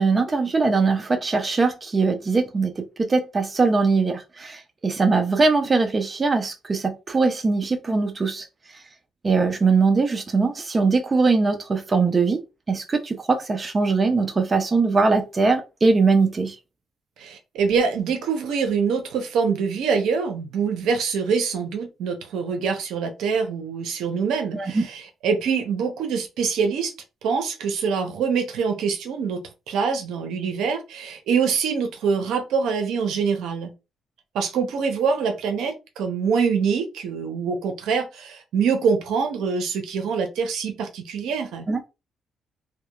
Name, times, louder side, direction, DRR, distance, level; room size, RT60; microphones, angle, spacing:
voice 1, 0.0-8.5 9.2-12.4 12.7-16.5 24.5-24.8 41.7-41.9, right 4 dB, 30° right, 0.4 m, -21 dB
voice 2, 17.2-26.9 27.2-33.7 34.3-41.7, right 6 dB, 85° right, 0.6 m, -24 dB
2.7 x 2.1 x 2.3 m
cardioid pair, 90°, 0 cm